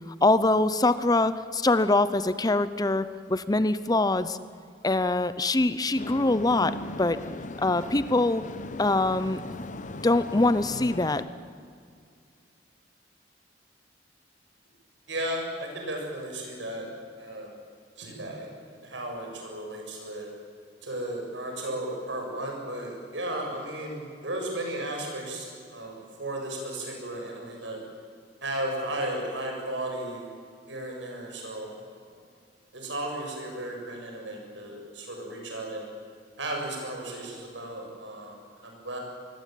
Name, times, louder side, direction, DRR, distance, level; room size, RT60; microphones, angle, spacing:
voice 1, 0.2-4.4 4.8-7.2 7.6-8.5 8.8-9.4 10.0-11.2, left 2 dB, 20° left, 14 dB, 0.7 m, -24 dB
sound 1, 6.0-11.2, left 2 dB, 45° left, 1.0 m, -38 dB
voice 2, 15.1-16.9 17.2-17.5 18.0-18.5 18.8-20.3 20.8-27.8 28.4-30.2 30.7-31.7 32.0-32.2 32.7-35.9 36.4-39.0, right 1 dB, 80° right, 1 dB, 7.6 m, -35 dB
26.0 x 21.0 x 9.3 m, 2.2 s
head